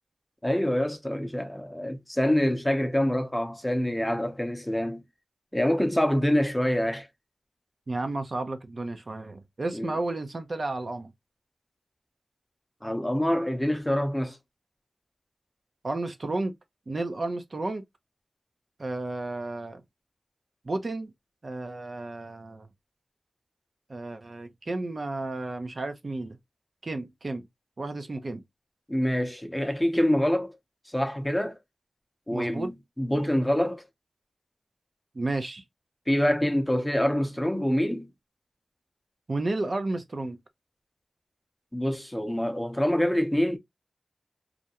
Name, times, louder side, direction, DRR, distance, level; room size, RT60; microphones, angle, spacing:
voice 1, 0.4-5.0 5.5-7.1 9.7-9.9 12.8-14.4 28.9-30.6 30.9-31.6 32.3-33.8 36.1-38.1 41.7-43.6, equal, 10° left, 0.6 m, -26 dB
voice 2, 7.9-11.1 15.8-16.5 16.9-17.8 18.8-19.8 20.6-21.1 21.4-22.7 23.9-26.4 26.8-27.5 27.8-28.4 32.3-32.7 35.1-35.6 39.3-40.4, right 2 dB, 55° right, 0.5 m, -32 dB
2.4 x 2.1 x 2.7 m
cardioid pair, 50°, 0 cm